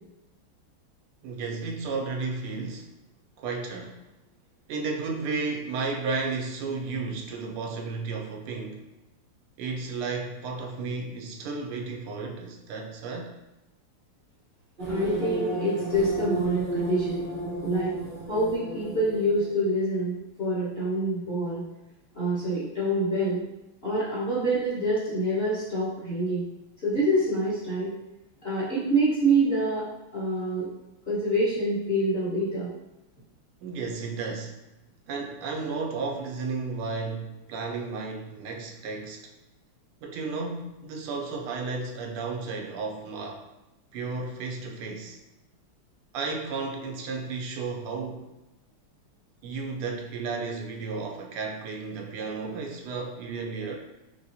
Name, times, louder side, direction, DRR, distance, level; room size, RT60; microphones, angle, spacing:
voice 1, 1.2-2.9 3.4-4.0 4.7-8.9 9.6-13.3 33.6-34.6 35.1-39.3 40.0-43.5 43.9-45.2 46.1-48.3 49.4-53.8, right 4 dB, 80° right, 1 dB, 1.5 m, -33 dB
sound 1, 14.8-19.7, right 1 dB, 45° right, 0.6 m, -33 dB
voice 2, 14.9-17.3 17.6-18.0 18.3-21.6 22.1-23.4 23.8-26.4 26.8-27.9 28.4-29.8 30.1-30.7 31.1-32.7, right 1 dB, 35° left, -10 dB, 1.2 m, -26 dB
5.5 x 2.9 x 2.7 m, 0.98 s
omnidirectional pair, 2.4 m